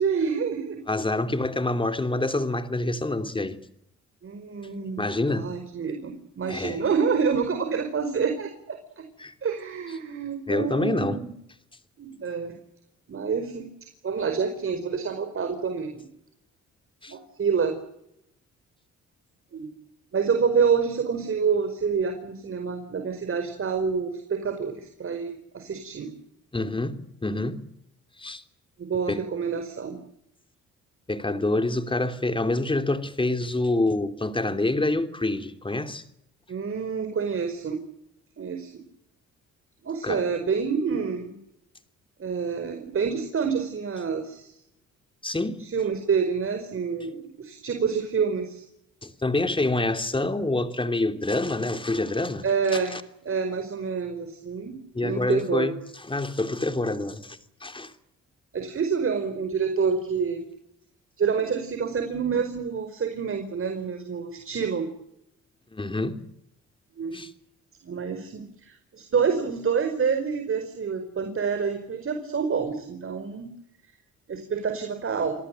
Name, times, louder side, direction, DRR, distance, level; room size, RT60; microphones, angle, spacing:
voice 1, 0.0-0.8 4.2-9.0 9.4-11.3 12.0-12.5 13.1-13.7 14.0-16.0 17.1-17.8 19.5-19.7 20.1-26.1 28.8-30.0 36.5-37.8 38.4-38.8 39.8-41.4 42.2-44.6 45.6-48.6 52.4-53.0 53.2-55.7 58.5-60.4 61.2-64.9 67.0-67.2 67.8-73.5 74.3-75.3, right 6 dB, 45° right, 4.9 m, -27 dB
voice 2, 0.9-3.6 5.0-5.5 6.5-6.8 9.2-9.3 10.5-11.2 17.0-17.1 26.5-27.6 28.2-28.4 29.1-29.2 31.1-36.0 40.0-40.2 45.2-45.6 49.0-52.4 52.7-53.0 54.9-55.7 56.1-57.9 65.7-66.2 67.1-67.3, left 2 dB, 15° left, 3.1 m, -27 dB
28.0 x 18.5 x 9.1 m
cardioid pair, 90°, 30 cm